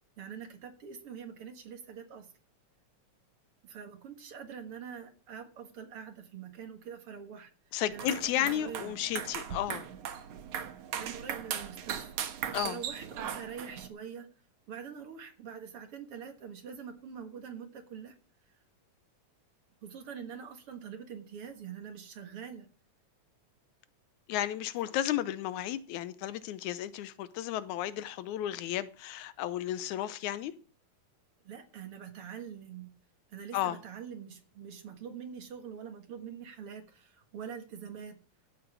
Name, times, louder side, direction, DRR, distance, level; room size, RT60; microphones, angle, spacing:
voice 1, 0.2-2.3 3.6-7.5 7.9-8.9 11.0-12.1 12.6-14.3 14.7-18.2 18.5-18.6 19.8-22.7 31.4-32.9 33.3-38.2, right 7 dB, 55° right, 2.3 m, -44 dB
voice 2, 7.7-9.8 12.5-12.8 24.3-30.5 33.5-33.8, left 12 dB, 85° left, 2.2 m, -33 dB
sound 1, 7.9-13.9, right 9 dB, 85° right, 2.7 m, -38 dB
15.5 x 7.6 x 6.1 m
omnidirectional pair, 3.3 m